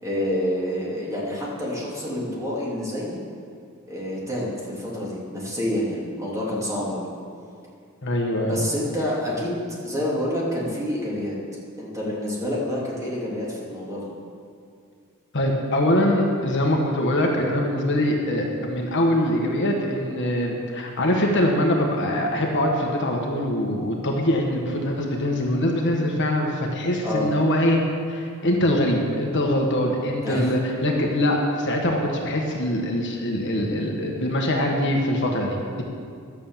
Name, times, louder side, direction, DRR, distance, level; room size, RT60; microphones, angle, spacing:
voice 1, 0.0-3.2 3.9-7.1 8.4-11.3 11.8-14.1 27.0-27.3 30.2-30.5, left 1 dB, 15° right, -5 dB, 2.7 m, -28 dB
voice 2, 8.0-8.6 15.3-27.8 28.1-35.8, left 1 dB, 55° left, 1 dB, 1.3 m, -23 dB
11.5 x 7.3 x 7.3 m, 2.3 s
head